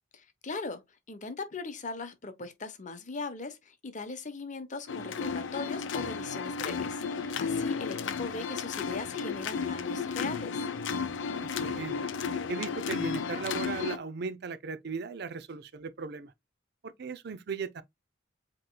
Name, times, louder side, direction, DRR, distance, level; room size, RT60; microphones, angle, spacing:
voice 1, 0.4-0.8 1.1-10.7, left 3 dB, 40° left, 0.8 m, -39 dB
sound 1, 4.9-14.0, left 5 dB, 80° left, 0.6 m, -33 dB
voice 2, 11.6-12.0 12.5-16.3 16.8-17.8, right 5 dB, 60° right, 0.5 m, -37 dB
7.6 x 3.0 x 2.2 m
head